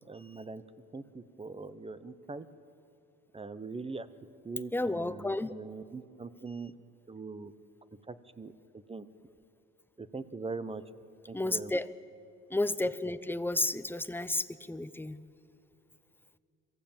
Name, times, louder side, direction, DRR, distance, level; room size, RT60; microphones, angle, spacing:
voice 1, 0.1-0.6 0.9-2.5 3.3-4.1 4.4-6.7 7.1-7.5 8.1-9.1 10.0-10.8 11.3-11.7, right 3 dB, 20° right, 14 dB, 0.9 m, -42 dB
voice 2, 4.7-5.5 11.3-11.9 12.5-15.2, left 2 dB, 5° left, 13 dB, 0.7 m, -32 dB
23.5 x 15.5 x 8.8 m, 2.7 s
cardioid pair, 90°, 30 cm